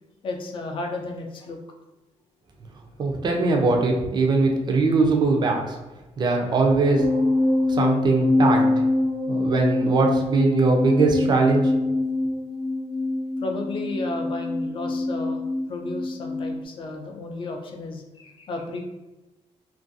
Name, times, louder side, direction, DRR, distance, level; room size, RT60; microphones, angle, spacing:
voice 1, 0.2-1.6 13.4-18.9, left 2 dB, 45° left, 2 dB, 0.4 m, -33 dB
voice 2, 3.0-5.8 6.2-7.1 7.7-8.7 9.3-11.7, right 3 dB, 40° right, 2 dB, 0.4 m, -21 dB
sound 1, 7.0-16.6, left 2 dB, 80° right, 0.6 m, -24 dB
2.5 x 2.2 x 2.6 m, 1.1 s
cardioid pair, 150°, 12 cm